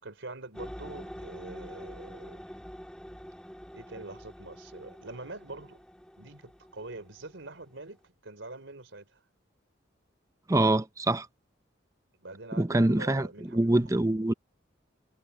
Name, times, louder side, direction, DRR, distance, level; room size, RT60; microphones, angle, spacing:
voice 1, 0.0-2.4 3.7-5.8 6.2-9.2 12.2-14.3, right 2 dB, 80° right, 3.6 m, -44 dB
sound 1, 0.5-7.9, equal, 5° left, 2.5 m, -46 dB
voice 2, 10.5-11.3 12.6-14.3, right 1 dB, 15° right, 0.6 m, -25 dB
head